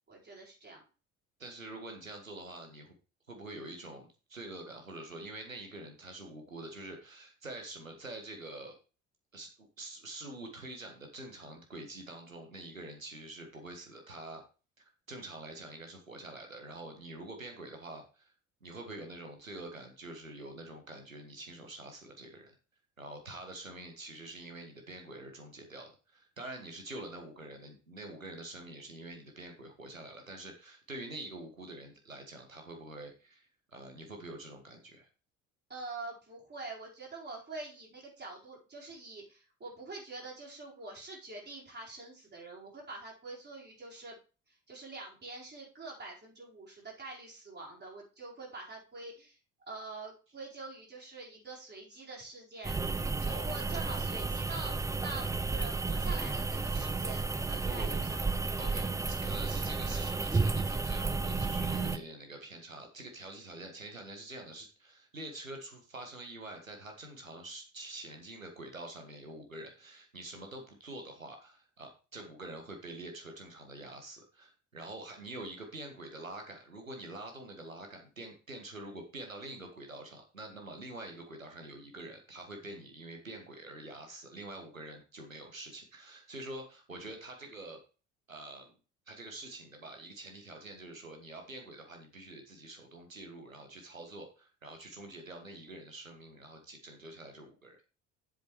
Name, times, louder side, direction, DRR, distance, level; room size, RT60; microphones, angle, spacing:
voice 1, 0.1-0.8 35.7-44.2 44.5-49.4 49.7-52.7 53.2-58.3 58.8-59.0, right 2 dB, 25° right, -3 dB, 4.7 m, -45 dB
voice 2, 1.4-2.9 3.3-8.7 9.3-14.4 14.8-18.3 18.6-22.5 23.0-35.1 53.3-53.4 57.6-58.0 58.6-87.8 88.3-88.7 89.1-97.8, right 2 dB, 85° right, 4 dB, 1.7 m, -46 dB
sound 1, 52.6-62.0, right 3 dB, 10° right, 0.5 m, -32 dB
7.8 x 6.7 x 4.7 m, 0.34 s
figure-of-eight pair, 55°, 39 cm